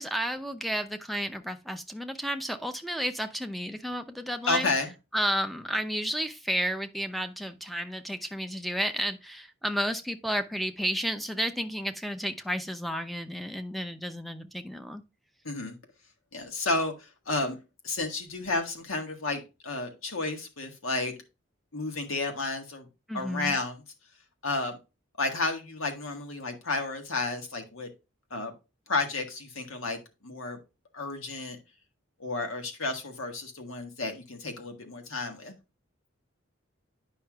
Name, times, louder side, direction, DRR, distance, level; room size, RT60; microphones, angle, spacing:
voice 1, 0.0-4.7 5.1-15.0 23.1-23.6, equal, ahead, 0.5 m, -32 dB
voice 2, 4.5-4.9 15.4-15.8 16.3-17.6 17.8-21.1 21.7-22.9 23.1-23.8 24.4-24.8 25.2-27.9 28.3-28.5 28.9-30.6 30.9-31.6 32.2-35.6, left 3 dB, 85° left, 1.6 m, -32 dB
9.5 x 5.6 x 2.3 m
head